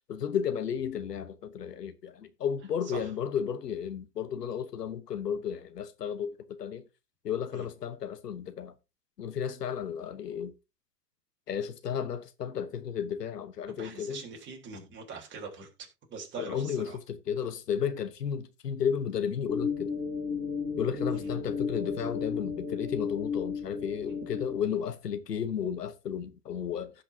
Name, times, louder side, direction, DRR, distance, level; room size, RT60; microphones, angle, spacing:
voice 1, 0.1-6.8 7.2-8.7 9.2-10.5 11.5-14.2 16.4-19.9 20.8-26.9, left 8 dB, 80° left, 1.2 m, -33 dB
voice 2, 2.8-3.1 7.5-7.7 13.7-15.7 16.1-17.0 21.1-21.3 24.0-24.2, right 5 dB, 25° right, 3.5 m, -43 dB
sound 1, 19.5-24.6, left 5 dB, 20° left, 4.6 m, -34 dB
17.0 x 5.8 x 2.8 m
hypercardioid pair, 120°, 48 cm